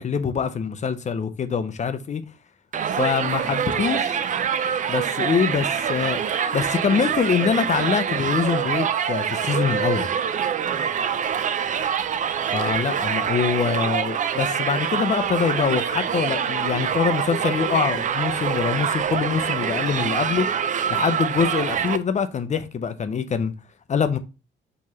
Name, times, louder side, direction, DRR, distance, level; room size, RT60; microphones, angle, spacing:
voice 1, 0.0-2.2 2.9-4.2 4.9-6.2 6.5-10.1 12.5-20.5 20.9-23.5 23.9-24.2, left 6 dB, 35° left, 0.5 m, -24 dB
Crowd, 2.7-22.0, right 8 dB, 40° right, 0.4 m, -25 dB
4.5 x 3.1 x 2.8 m
cardioid pair, 90°, 20 cm